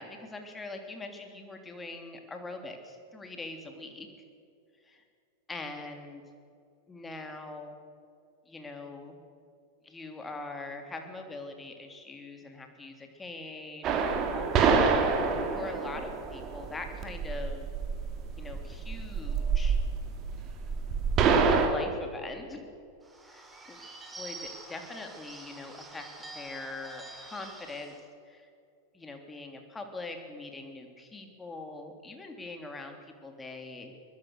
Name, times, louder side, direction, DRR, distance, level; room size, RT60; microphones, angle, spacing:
voice 1, 0.0-4.1 4.8-5.0 5.5-6.2 6.9-7.7 8.4-9.2 9.8-17.7 18.3-19.8 21.5-22.7 23.2-23.8 24.2-26.1 26.3-27.9 28.2-28.5 28.9-33.9, left 2 dB, 15° left, 5 dB, 3.3 m, -42 dB
sound 1, 13.8-21.7, right 5 dB, 30° right, 3.1 m, -27 dB
Bird / Bell, 23.0-28.0, right 2 dB, 10° right, 4.0 m, -47 dB
22.5 x 21.5 x 6.6 m, 2.4 s
figure-of-eight pair, 90°, 0 cm